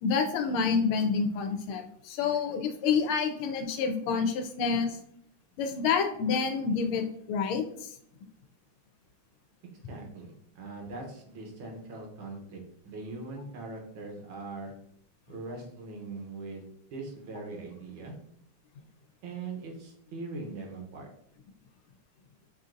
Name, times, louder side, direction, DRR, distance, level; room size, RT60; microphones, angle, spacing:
voice 1, 0.0-5.0 5.6-7.9, left 5 dB, 80° left, 5 dB, 1.4 m, -28 dB
voice 2, 9.9-14.7 15.3-18.1 19.2-21.1, right 3 dB, 70° right, 1 dB, 1.6 m, -41 dB
6.1 x 2.6 x 2.5 m, 0.69 s
omnidirectional pair, 2.3 m